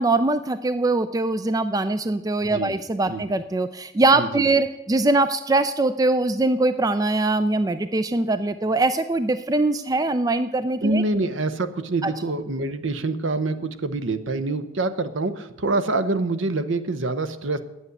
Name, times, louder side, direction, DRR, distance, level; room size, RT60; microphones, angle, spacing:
voice 1, 0.0-11.0 12.0-12.1, right 2 dB, 20° right, 12 dB, 0.3 m, -22 dB
voice 2, 4.2-4.5 10.8-17.6, right 2 dB, 70° right, 10 dB, 0.8 m, -26 dB
9.7 x 8.2 x 8.0 m, 0.93 s
head